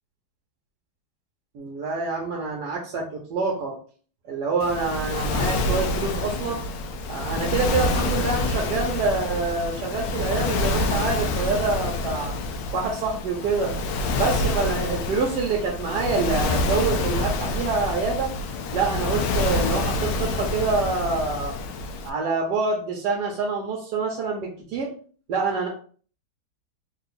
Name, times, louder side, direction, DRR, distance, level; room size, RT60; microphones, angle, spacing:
voice 1, 1.5-3.8 4.3-6.6 7.1-12.3 12.7-13.7 14.2-18.3 18.7-21.5 22.0-24.9 25.3-25.7, right 4 dB, 65° right, -1 dB, 1.1 m, -26 dB
Waves surf, 4.6-22.1, left 2 dB, 75° left, 1.3 m, -27 dB
3.7 x 2.3 x 4.0 m, 0.43 s
omnidirectional pair, 2.3 m